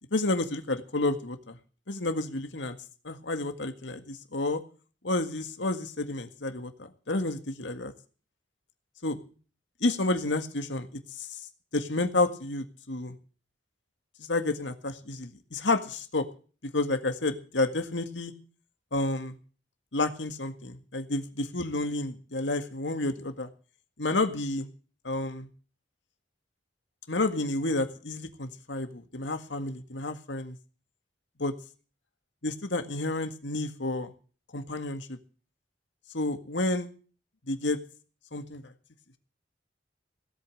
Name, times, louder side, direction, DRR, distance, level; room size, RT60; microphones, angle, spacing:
voice 1, 0.1-1.6 1.9-2.8 3.0-4.6 5.0-7.9 9.0-9.2 9.8-11.3 11.7-13.2 14.2-16.3 16.7-18.3 18.9-19.4 19.9-23.5 24.0-24.7 25.0-25.5 27.1-30.6 31.4-31.5 32.4-34.1 34.5-35.2 36.1-36.9 37.5-37.8 38.3-38.7, left 2 dB, 80° left, 8 dB, 1.8 m, -30 dB
17.5 x 8.6 x 7.7 m, 0.39 s
head